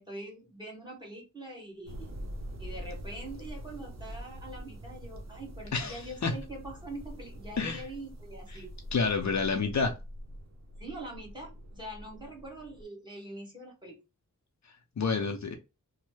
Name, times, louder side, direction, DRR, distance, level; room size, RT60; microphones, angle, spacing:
voice 1, 0.0-2.1 2.6-8.7 10.8-14.0, right 1 dB, 15° right, 1.4 m, -44 dB
sound 1, 1.9-12.8, equal, 55° right, 0.9 m, -44 dB
voice 2, 5.7-6.4 7.6-7.8 8.9-10.0 15.0-15.6, left 4 dB, 60° left, 0.6 m, -29 dB
3.1 x 2.2 x 3.2 m
wide cardioid pair, 75°, 32 cm